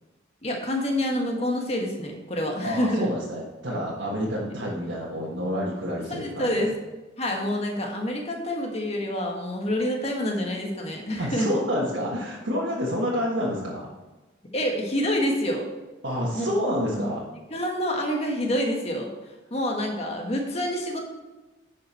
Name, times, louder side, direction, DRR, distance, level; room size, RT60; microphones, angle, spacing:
voice 1, 0.4-3.1 6.1-6.7 7.2-11.5 14.5-15.6 16.3-16.5 16.9-17.0 17.5-19.1 19.5-21.0, left 1 dB, 30° left, 1 dB, 1.4 m, -27 dB
voice 2, 2.6-6.7 11.2-13.9 16.0-17.2, equal, 65° right, -5 dB, 1.6 m, -28 dB
11.0 x 5.5 x 4.3 m, 1.1 s
head